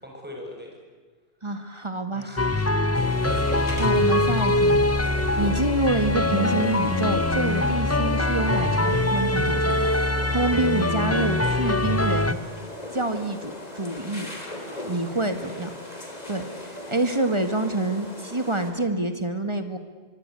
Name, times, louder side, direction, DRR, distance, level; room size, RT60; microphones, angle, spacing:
voice 1, 0.0-0.7 2.1-2.9 14.7-15.6, left 1 dB, 10° right, 0 dB, 7.4 m, -43 dB
voice 2, 1.4-2.3 3.8-4.8 5.4-12.4 12.9-14.3 14.9-15.7 16.3-19.8, right 2 dB, 25° right, 8 dB, 1.8 m, -27 dB
sound 1, 2.4-12.3, left 2 dB, 15° left, 0.7 m, -23 dB
sound 2, 2.9-18.7, left 1 dB, 35° left, 4.2 m, -38 dB
sound 3, 3.3-8.4, equal, 75° left, 5.5 m, -38 dB
24.0 x 23.5 x 9.6 m, 1.4 s
omnidirectional pair, 1.1 m